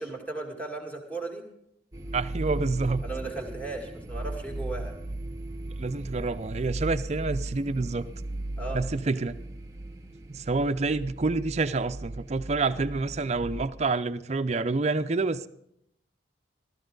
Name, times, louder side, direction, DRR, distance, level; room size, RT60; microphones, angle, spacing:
voice 1, 0.0-1.5 3.0-4.9 8.6-8.8, right 3 dB, 10° left, 2.2 m, -36 dB
sound 1, 1.9-13.7, right 2 dB, 20° right, 1.0 m, -37 dB
voice 2, 2.1-3.0 5.8-8.1 8.7-9.4 10.3-15.5, right 3 dB, 35° right, 0.5 m, -28 dB
15.0 x 14.0 x 3.9 m
head